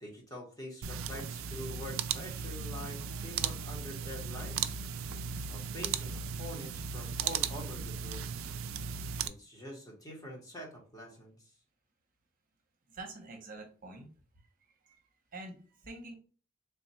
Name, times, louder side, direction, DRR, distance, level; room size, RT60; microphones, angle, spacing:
voice 1, 0.0-4.8 5.5-8.2 9.2-11.4, equal, 20° left, -1 dB, 0.9 m, -45 dB
sound 1, 0.8-9.3, right 7 dB, 75° right, 0.3 m, -36 dB
voice 2, 12.9-14.1 14.8-15.0 15.3-16.1, right 2 dB, 45° right, 2 dB, 0.8 m, -46 dB
3.5 x 2.3 x 4.1 m, 0.39 s
head